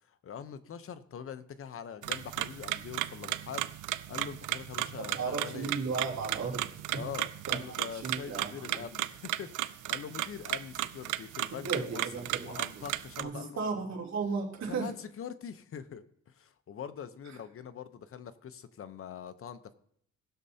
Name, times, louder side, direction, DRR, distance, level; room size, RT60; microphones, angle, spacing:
voice 1, 0.1-3.7 4.1-5.8 6.9-13.6 14.7-19.7, left 8 dB, 45° left, 11 dB, 0.8 m, -43 dB
sound 1, 2.0-13.2, right 15 dB, 85° right, 0.5 m, -35 dB
voice 2, 5.0-7.0 7.5-8.8 11.6-12.8 13.2-14.9, right 4 dB, 60° right, -2 dB, 3.2 m, -35 dB
19.0 x 6.7 x 2.8 m, 0.69 s
cardioid pair, 90°, 30 cm